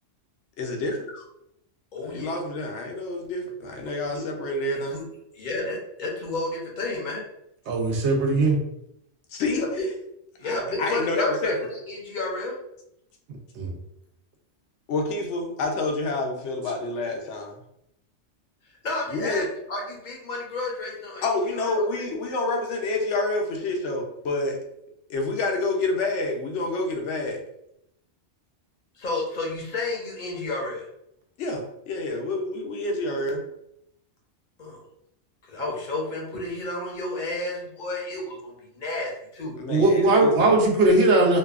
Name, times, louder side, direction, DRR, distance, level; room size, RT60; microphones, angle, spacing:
voice 1, 0.6-1.1 2.0-5.0 9.3-9.7 10.4-11.7 14.9-17.5 19.1-19.5 21.2-24.6 25.1-27.4 31.4-33.4 39.5-40.5, left 2 dB, 85° left, 2 dB, 0.9 m, -28 dB
voice 2, 1.9-2.3 4.7-5.0 5.3-7.2 9.5-9.9 10.4-12.5 18.8-21.8 29.0-30.9 34.6-34.8 35.5-39.5, left 2 dB, 50° left, -1 dB, 0.7 m, -31 dB
voice 3, 7.7-8.6 13.6-13.7 39.7-41.4, right 2 dB, 75° right, 1 dB, 0.9 m, -19 dB
2.6 x 2.2 x 2.3 m, 0.79 s
omnidirectional pair, 1.2 m